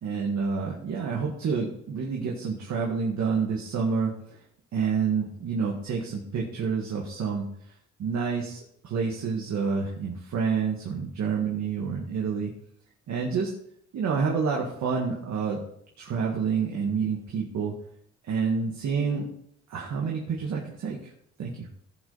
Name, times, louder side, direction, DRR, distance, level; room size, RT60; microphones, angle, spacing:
voice 1, 0.0-4.4 4.7-7.4 8.0-12.5 13.1-13.5 13.9-15.6 16.0-17.7 18.2-19.3 19.7-21.1 21.4-21.7, right 5 dB, 65° right, -1 dB, 1.9 m, -28 dB
16.0 x 5.5 x 4.2 m, 0.70 s
cardioid pair, 90°, 30 cm